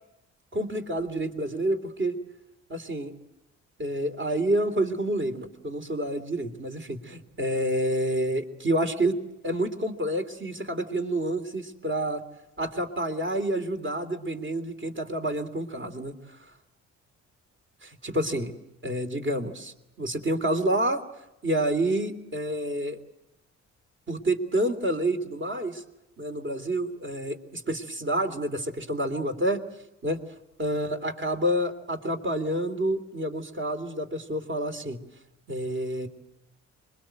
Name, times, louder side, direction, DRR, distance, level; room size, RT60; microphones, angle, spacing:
voice 1, 0.5-2.2 2.7-3.1 3.8-9.2 9.4-12.2 12.6-16.4 17.8-18.5 18.8-21.0 21.4-23.0 24.1-25.8 26.2-29.6 30.0-30.2 30.6-35.0 35.5-36.1, right 1 dB, 40° right, 6 dB, 3.1 m, -28 dB
25.5 x 22.0 x 7.8 m, 0.91 s
cardioid pair, 90°, 30 cm